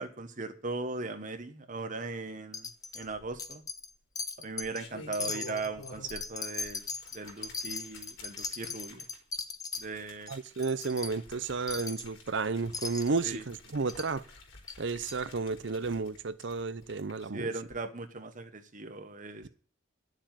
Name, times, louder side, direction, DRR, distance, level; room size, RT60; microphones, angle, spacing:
voice 1, 0.0-2.7 2.9-3.6 4.4-6.9 7.1-9.0 9.8-10.3 13.2-13.4 17.3-19.5, right 3 dB, 40° right, 1.1 m, -38 dB
Wind chime, 2.5-3.1 3.4-3.9 4.2-4.8 5.1-9.8 10.3-10.4 10.6-11.1 11.7-12.1 12.7-13.2 13.9-14.1 14.7-14.8 15.1-15.2, left 4 dB, 20° left, 0.8 m, -38 dB
sound 1, 3.0-3.7 4.5-6.3 6.6-17.2 17.6-17.7, left 2 dB, 75° left, 4.2 m, -51 dB
voice 2, 10.3-14.2 14.8-17.5, right 4 dB, 60° right, 0.6 m, -32 dB
11.0 x 7.5 x 9.0 m
head